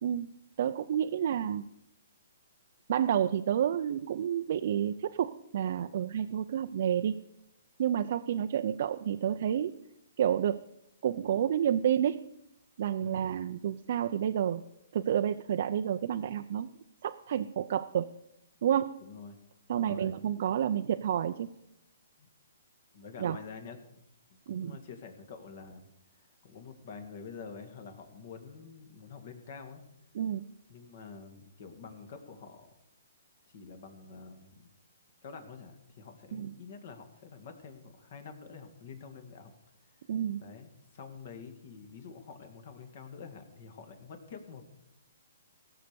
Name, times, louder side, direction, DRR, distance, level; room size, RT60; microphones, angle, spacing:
voice 1, 0.6-1.6 2.9-7.1 7.8-9.7 10.2-10.6 11.0-12.2 12.8-14.6 14.9-16.7 17.0-18.1 18.6-18.9 19.7-21.5 23.2-23.4 24.5-24.8 30.1-30.4 36.3-36.5 40.1-40.4, right 9 dB, 55° right, 7 dB, 0.5 m, -29 dB
voice 2, 13.0-13.3 19.0-19.4 19.7-20.1 22.2-22.3 22.9-23.8 24.3-25.9 26.2-29.8 30.7-32.7 33.5-34.7 35.2-39.5 40.4-44.6, left 5 dB, 55° left, 7 dB, 2.2 m, -47 dB
16.5 x 6.5 x 6.9 m, 0.82 s
hypercardioid pair, 145°, 0 cm